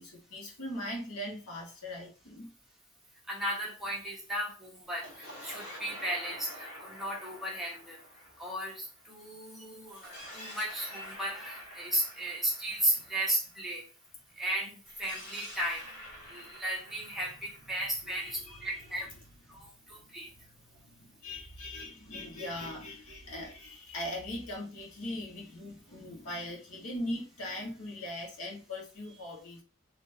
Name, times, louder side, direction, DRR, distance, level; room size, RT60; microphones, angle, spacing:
voice 1, 0.0-2.5 18.0-19.1 19.5-20.1 20.7-29.6, left 1 dB, 85° left, -3 dB, 1.4 m, -40 dB
voice 2, 3.3-8.0 8.4-13.8 14.4-15.8 16.3-19.1 19.9-20.3, right 1 dB, ahead, -4 dB, 0.9 m, -35 dB
sound 1, 4.9-9.3 9.8-13.8 14.8-18.6, equal, 55° left, 1.3 m, -48 dB
3.5 x 2.8 x 2.7 m, 0.36 s
head